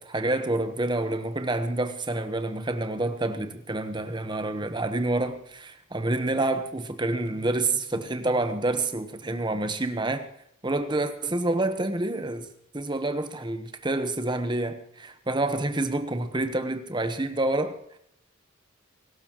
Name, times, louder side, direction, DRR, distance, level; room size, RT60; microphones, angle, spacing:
voice 1, 0.0-10.3 10.6-12.5 12.7-18.0, right 2 dB, 20° right, 1.1 m, -28 dB
24.0 x 13.0 x 3.1 m
head